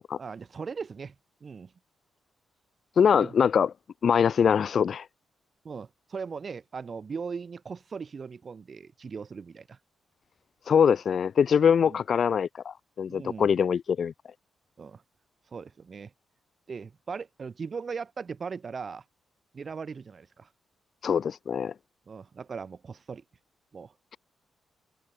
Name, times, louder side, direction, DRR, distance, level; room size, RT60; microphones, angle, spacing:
voice 1, 0.2-1.1 1.4-1.7 3.2-3.3 5.6-9.8 11.9-12.0 13.1-13.6 14.8-15.0 15.5-16.1 16.7-19.0 19.5-20.5 22.1-23.2 23.7-23.9, right 5 dB, 45° right, 7.4 m, -39 dB
voice 2, 3.0-3.7 4.0-5.1 10.7-14.1 21.0-21.7, left 7 dB, 55° left, 2.1 m, -23 dB
cardioid pair, 100°, 0 cm